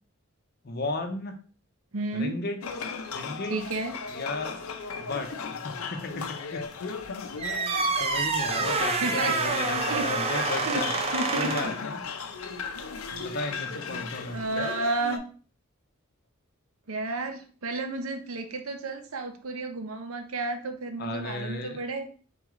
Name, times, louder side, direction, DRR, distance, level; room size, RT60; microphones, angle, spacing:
voice 1, 0.6-1.3 2.1-2.6 3.1-3.6 4.1-4.6 5.0-5.3 5.6-6.6 8.0-10.9 11.4-12.0 13.2-14.7 21.0-21.8, left 2 dB, 45° left, 4 dB, 0.7 m, -34 dB
voice 2, 1.9-2.4 3.5-3.9 8.7-10.1 10.7-11.6 14.3-15.2 16.9-22.1, right 3 dB, 80° right, 6 dB, 0.7 m, -32 dB
sound 1, 2.6-15.2, left 5 dB, 85° left, 0.6 m, -36 dB
sound 2, 7.4-11.8, right 4 dB, 30° right, 0.5 m, -28 dB
4.0 x 3.2 x 3.6 m, 0.40 s
head